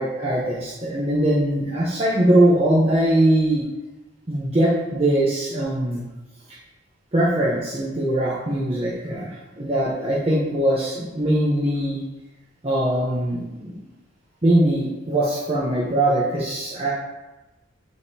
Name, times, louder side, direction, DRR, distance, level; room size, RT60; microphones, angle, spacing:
voice 1, 0.0-3.7 4.3-6.0 6.5-6.6 7.1-12.0 12.6-13.8 14.4-16.9, right 1 dB, 30° right, -6 dB, 0.8 m, -21 dB
9.2 x 3.7 x 2.8 m, 1.1 s
head